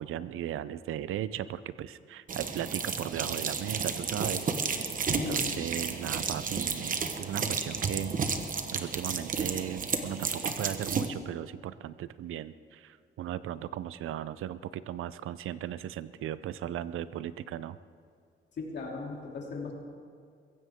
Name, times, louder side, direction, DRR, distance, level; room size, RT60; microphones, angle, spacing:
voice 1, 0.0-4.5 5.1-8.2 8.7-17.8, right 11 dB, 85° right, 15 dB, 0.6 m, -37 dB
sound 1, 2.3-11.1, right 5 dB, 40° right, 1.1 m, -32 dB
voice 2, 5.1-5.6 18.6-19.7, left 3 dB, 55° left, -1 dB, 3.0 m, -37 dB
22.5 x 16.0 x 3.6 m, 2.2 s
wide cardioid pair, 150°, 21 cm